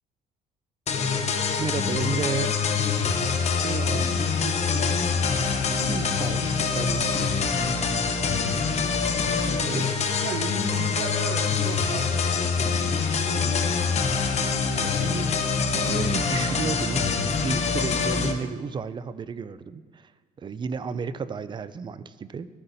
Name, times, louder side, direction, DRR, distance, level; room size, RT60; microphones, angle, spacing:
sound 1, 0.9-18.3, left 5 dB, 40° left, 0.9 m, -25 dB
voice 1, 1.6-2.6 5.7-7.3 9.6-9.9 13.3-13.5 15.0-15.3 15.7-17.1 17.4-20.1 20.4-22.5, right 5 dB, 25° right, 14 dB, 0.4 m, -32 dB
voice 2, 3.6-4.1 4.4-5.1 9.3-9.9 10.2-13.6 14.7-15.2, right 6 dB, 75° right, 8 dB, 0.9 m, -36 dB
13.5 x 9.8 x 2.7 m, 1.5 s
cardioid pair, 110°, 17 cm